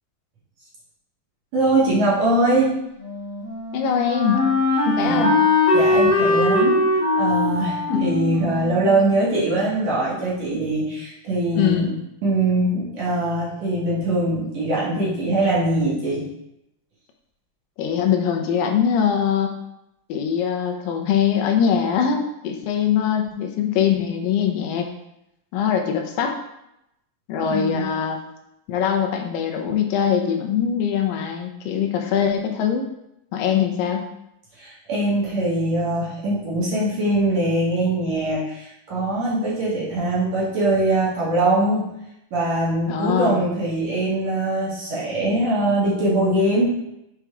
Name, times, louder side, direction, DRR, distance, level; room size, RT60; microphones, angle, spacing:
voice 1, 1.5-2.7 5.0-5.2 5.7-6.8 7.2-11.9 12.2-16.2 27.5-27.9 34.6-41.9 42.3-46.7, right 2 dB, 55° right, -8 dB, 3.0 m, -22 dB
Wind instrument woodwind instrument, 3.0-9.8, left 2 dB, 40° left, 0.8 m, -21 dB
voice 2, 3.7-4.5 4.9-5.4 7.9-8.0 11.5-11.9 17.8-19.5 20.1-24.9 25.5-26.4 27.3-28.2 28.7-32.9 33.3-34.1 42.9-43.4, left 8 dB, 80° left, 4 dB, 2.4 m, -22 dB
7.1 x 4.7 x 3.6 m, 0.83 s
omnidirectional pair, 4.0 m